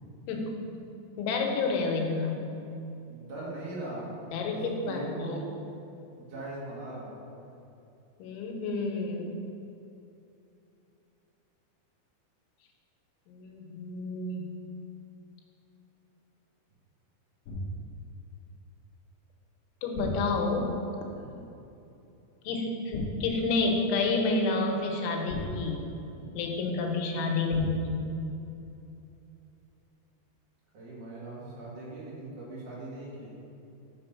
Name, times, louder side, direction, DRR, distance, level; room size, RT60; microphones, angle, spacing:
voice 1, 0.3-0.6 1.2-2.5 4.3-5.4 8.2-9.3 13.3-14.5 19.8-20.7 22.5-25.8 26.4-28.1, left 3 dB, 90° left, 2 dB, 3.3 m, -29 dB
voice 2, 3.1-4.1 4.5-5.4 6.2-7.2 21.1-21.5 26.1-26.4 30.7-33.3, right 2 dB, 45° right, -7 dB, 2.3 m, -40 dB
sound 1, 17.5-18.0 20.0-20.7 22.9-23.5 25.3-26.1 27.5-28.1, left 2 dB, 75° left, 2.5 m, -37 dB
6.4 x 6.2 x 5.6 m, 2.8 s
omnidirectional pair, 5.2 m